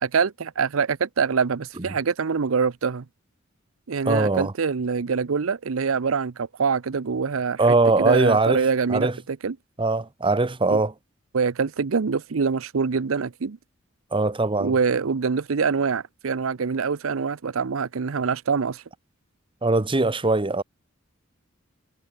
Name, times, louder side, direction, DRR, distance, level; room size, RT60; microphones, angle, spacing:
voice 1, 0.0-3.0 3.9-7.6 8.0-9.6 10.7-10.8 11.3-13.6 14.6-18.8, right 5 dB, 85° right, 0.6 m, -24 dB
voice 2, 4.1-4.5 7.6-9.2 9.8-10.9 14.1-14.7 19.6-20.6, right 3 dB, 25° right, 1.0 m, -21 dB
head